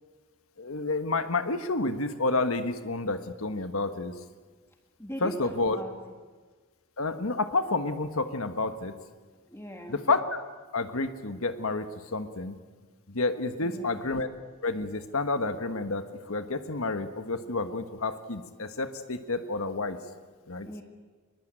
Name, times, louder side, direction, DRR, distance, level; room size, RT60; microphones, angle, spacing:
voice 1, 0.6-4.1 5.2-5.8 7.0-8.9 9.9-10.4 10.7-12.6 13.1-14.3 14.6-20.0 20.5-20.7, left 3 dB, 75° left, 8 dB, 1.4 m, -30 dB
voice 2, 5.0-5.9 9.5-10.0 13.6-14.1 20.6-20.8, equal, 10° left, 2 dB, 1.7 m, -40 dB
23.0 x 21.5 x 8.9 m, 1.4 s
head